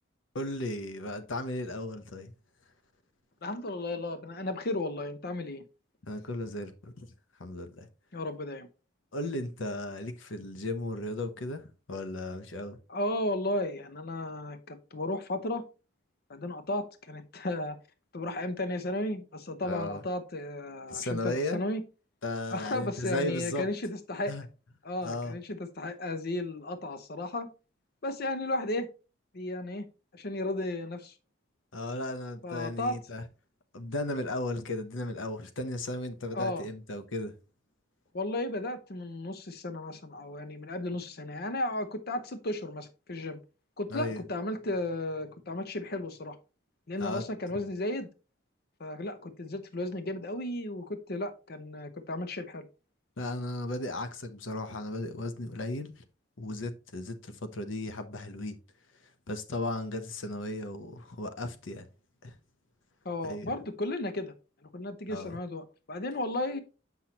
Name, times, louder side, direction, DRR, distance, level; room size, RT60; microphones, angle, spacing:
voice 1, 0.3-2.3 6.1-7.1 7.4-7.9 9.1-12.8 19.6-20.0 20.9-21.6 22.2-23.7 24.3-24.4 25.0-25.3 31.7-33.2 33.7-37.3 43.9-44.2 47.0-47.2 53.2-56.0 56.4-58.6 59.3-61.9 62.2-62.3 63.2-63.5 65.1-65.4, left 2 dB, 80° left, 0.9 m, -35 dB
voice 2, 3.4-5.6 8.1-8.7 12.9-15.6 16.3-17.8 18.1-21.8 22.5-24.4 24.8-27.5 28.0-28.9 29.3-29.9 30.1-31.1 32.4-33.0 36.3-36.7 38.1-43.4 43.8-46.4 46.9-48.1 48.8-52.6 63.0-64.3 64.7-66.6, left 1 dB, 55° left, 0.8 m, -34 dB
7.3 x 5.9 x 2.9 m
head